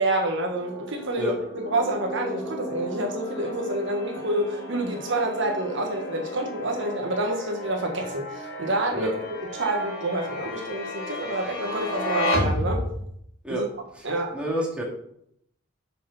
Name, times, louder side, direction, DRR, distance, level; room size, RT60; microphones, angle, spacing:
voice 1, 0.0-1.3 1.7-9.1 9.5-12.8 13.5-13.6 14.0-14.3, right 1 dB, 60° right, 2 dB, 1.5 m, -28 dB
sound 1, 0.5-13.2, left 1 dB, 75° left, 3.0 m, -33 dB
sound 2, 1.4-7.1, left 1 dB, 15° left, 1.3 m, -39 dB
voice 2, 14.3-14.8, equal, 5° right, -3 dB, 2.3 m, -28 dB
6.9 x 6.8 x 5.6 m, 0.72 s
head